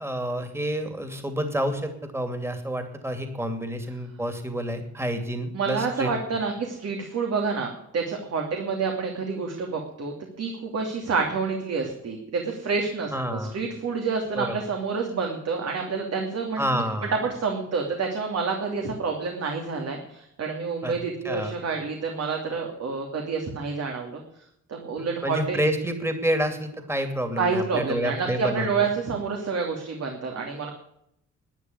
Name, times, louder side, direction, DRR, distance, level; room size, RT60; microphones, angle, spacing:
voice 1, 0.0-6.1 13.1-13.6 14.4-14.6 16.6-17.1 20.8-20.9 21.2-21.6 25.2-28.9, equal, 10° right, 7 dB, 2.7 m, -29 dB
voice 2, 5.5-16.8 17.1-24.2 24.7-25.6 27.4-30.7, right 5 dB, 55° right, 2 dB, 2.9 m, -28 dB
12.5 x 9.8 x 9.6 m, 0.76 s
cardioid pair, 90°, 30 cm